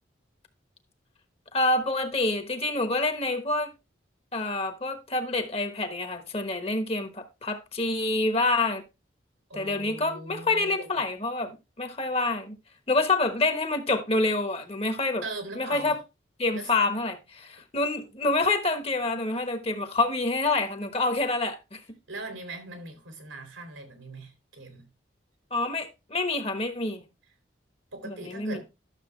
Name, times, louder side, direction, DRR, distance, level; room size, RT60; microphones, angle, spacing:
voice 1, 1.5-3.7 4.3-8.8 9.5-11.5 11.8-12.6 12.9-15.2 15.5-16.0 16.4-21.8 25.5-27.0 28.0-28.6, left 2 dB, 30° left, 1.2 m, -27 dB
voice 2, 9.5-11.0 15.2-16.0 16.5-16.7 22.1-24.9 27.9-28.6, right 2 dB, 90° right, 2.8 m, -40 dB
12.0 x 6.9 x 3.2 m
head